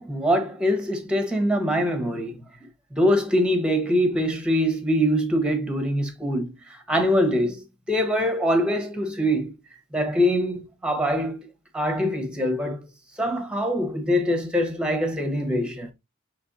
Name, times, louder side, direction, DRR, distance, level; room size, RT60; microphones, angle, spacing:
voice 1, 0.0-2.5 2.9-9.5 9.9-11.5 11.7-12.8 13.2-15.9, equal, 5° right, 1.0 m, -23 dB
5.9 x 3.2 x 2.6 m
head